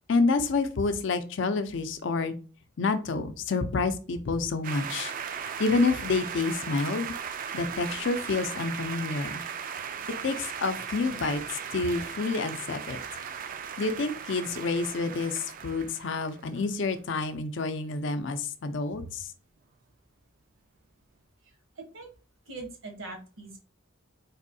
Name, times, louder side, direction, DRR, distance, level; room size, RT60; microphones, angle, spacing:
voice 1, 0.1-2.3 2.8-5.1 5.6-7.1 7.5-9.4 10.2-13.0 13.8-19.3, left 3 dB, 60° left, 9 dB, 0.4 m, -28 dB
sound 1, 4.6-16.7, right 7 dB, 40° right, 0.3 m, -37 dB
voice 2, 21.8-22.1 22.5-23.6, right 3 dB, 75° right, 3 dB, 1.0 m, -41 dB
4.1 x 2.7 x 2.6 m, 0.35 s
head